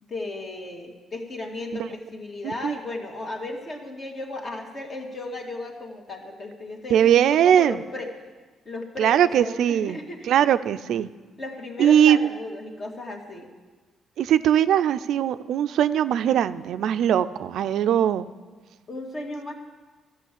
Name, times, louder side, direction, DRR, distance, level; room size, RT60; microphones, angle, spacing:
voice 1, 0.0-8.1 8.7-10.4 11.4-13.5 18.9-19.5, left 2 dB, 40° left, 2 dB, 1.9 m, -35 dB
voice 2, 2.4-2.7 6.9-7.8 9.0-10.0 10.3-11.1 11.8-12.3 14.2-18.3, right 10 dB, 75° right, 12 dB, 0.4 m, -20 dB
12.5 x 6.4 x 8.3 m, 1.3 s
cardioid pair, 90°, 0 cm